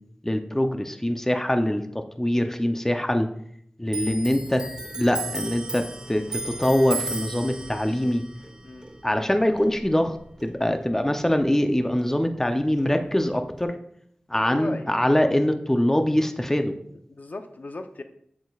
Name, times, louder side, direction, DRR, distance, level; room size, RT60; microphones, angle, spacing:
voice 1, 0.2-3.3 3.8-4.6 4.9-8.2 9.0-10.2 10.4-13.7 14.3-16.7, left 1 dB, 15° left, 6 dB, 0.6 m, -23 dB
Clock, 3.9-10.9 11.2-12.5 12.8-13.6, right 2 dB, 25° right, 1.1 m, -36 dB
voice 2, 14.4-14.9 16.9-18.0, left 2 dB, 60° left, 7 dB, 0.7 m, -37 dB
8.3 x 8.1 x 2.4 m, 0.68 s
wide cardioid pair, 80°, 3 cm